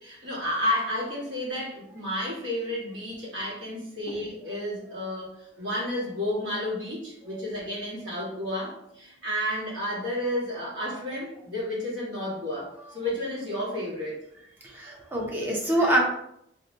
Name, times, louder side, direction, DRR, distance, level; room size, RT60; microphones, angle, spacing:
voice 1, 0.0-14.2, left 1 dB, 85° right, -5 dB, 1.3 m, -31 dB
voice 2, 14.7-16.0, right 1 dB, 10° right, -3 dB, 0.6 m, -25 dB
3.1 x 2.5 x 2.6 m, 0.75 s
head